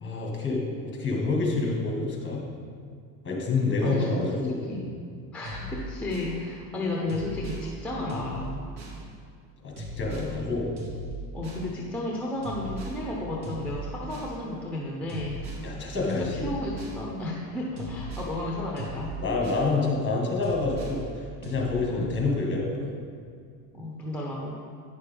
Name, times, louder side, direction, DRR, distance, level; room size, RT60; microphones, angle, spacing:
voice 1, 0.0-0.6 1.0-2.4 3.2-4.7 9.6-10.7 15.6-16.5 19.2-22.9, left 3 dB, 25° left, -1 dB, 1.8 m, -27 dB
voice 2, 3.8-4.2 4.7-4.9 5.3-8.6 11.3-15.4 16.0-19.1 21.9-22.1 23.7-24.6, left 1 dB, 5° left, -3 dB, 0.9 m, -33 dB
sound 1, 5.4-6.3 7.1-7.7 8.1-9.0 9.8-10.3 10.8-11.7 12.4-13.0 13.4-14.3 15.1-15.7 16.1-17.0 17.8-18.3 18.8-19.7 20.4-21.0 21.4-21.7, equal, 55° right, 1.8 m, -37 dB
9.5 x 6.5 x 3.6 m, 2.2 s
cardioid pair, 120°, 44 cm